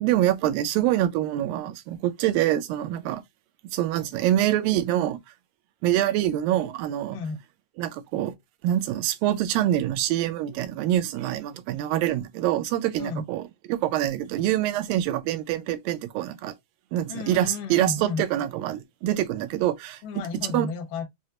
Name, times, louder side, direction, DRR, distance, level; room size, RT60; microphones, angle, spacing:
voice 1, 0.0-3.2 3.7-5.2 5.8-7.2 7.8-8.3 8.6-16.5 16.9-20.0 20.5-20.7, right 13 dB, 90° right, 2.4 m, -25 dB
voice 2, 17.1-18.2 20.0-21.1, left 5 dB, 75° left, 2.6 m, -32 dB
6.2 x 2.1 x 2.7 m
omnidirectional pair, 3.9 m